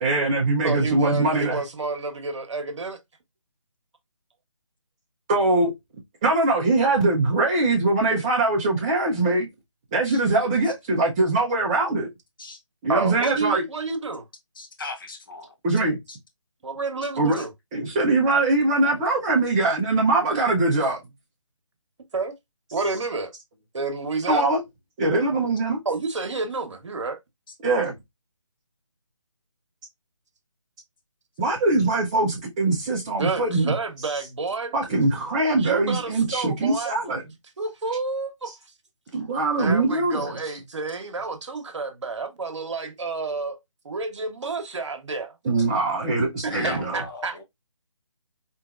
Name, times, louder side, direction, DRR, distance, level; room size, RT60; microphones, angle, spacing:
voice 1, 0.0-1.6 5.3-5.7 6.2-9.5 9.9-12.1 12.8-13.7 15.6-16.0 17.2-17.4 17.7-21.0 24.3-24.6 25.0-25.8 27.6-27.9 31.4-33.7 34.7-37.2 39.1-40.4 45.4-47.0, right 2 dB, 15° right, 0.5 m, -22 dB
voice 2, 0.6-3.0 12.9-14.3 16.6-17.5 22.1-22.3 22.7-23.3 23.7-24.5 25.8-27.2 33.2-34.7 35.6-36.9 37.6-38.5 39.6-43.6 43.8-45.3 46.4-47.4, right 3 dB, 60° right, 1.0 m, -29 dB
voice 3, 14.6-15.5 16.1-16.2 17.4-17.5 46.5-47.4, left 3 dB, 40° left, 0.9 m, -37 dB
4.4 x 3.0 x 2.4 m
figure-of-eight pair, 160°, 17 cm